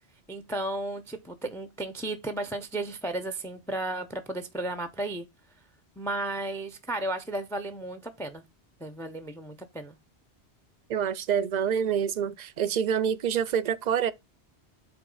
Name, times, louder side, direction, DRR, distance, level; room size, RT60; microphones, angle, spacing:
voice 1, 0.3-5.3 6.0-8.4 8.8-10.0, right 2 dB, 5° left, 0.5 m, -34 dB
voice 2, 10.9-14.1, right 8 dB, 55° right, 0.5 m, -27 dB
7.9 x 4.0 x 3.8 m
omnidirectional pair, 1.2 m